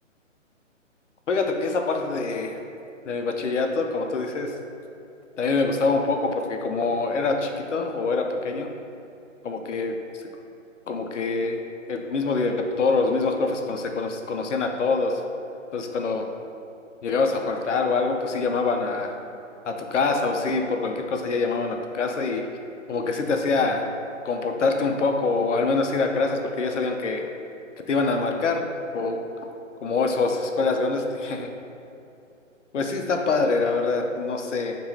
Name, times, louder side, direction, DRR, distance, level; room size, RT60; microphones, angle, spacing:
voice 1, 1.3-2.6 3.1-4.5 5.4-8.7 9.4-10.3 10.9-15.2 15.7-16.3 17.0-19.2 19.7-22.4 22.9-23.9 24.2-27.3 27.9-28.6 28.9-29.2 29.8-31.5 32.7-34.8, left 3 dB, 65° left, 4 dB, 0.6 m, -25 dB
6.2 x 2.9 x 2.8 m, 2.7 s
figure-of-eight pair, 140°, 39 cm